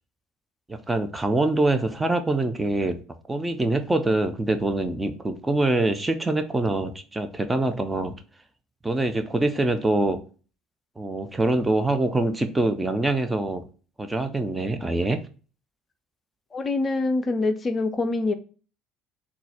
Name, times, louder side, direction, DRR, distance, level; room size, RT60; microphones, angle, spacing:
voice 1, 0.7-3.0 3.3-8.2 8.8-10.2 11.0-13.7 14.0-15.2, right 2 dB, 15° right, 9 dB, 0.6 m, -24 dB
voice 2, 16.5-18.3, left 3 dB, 30° left, 8 dB, 0.5 m, -25 dB
4.0 x 2.4 x 4.2 m, 0.37 s
figure-of-eight pair, 60°, 0 cm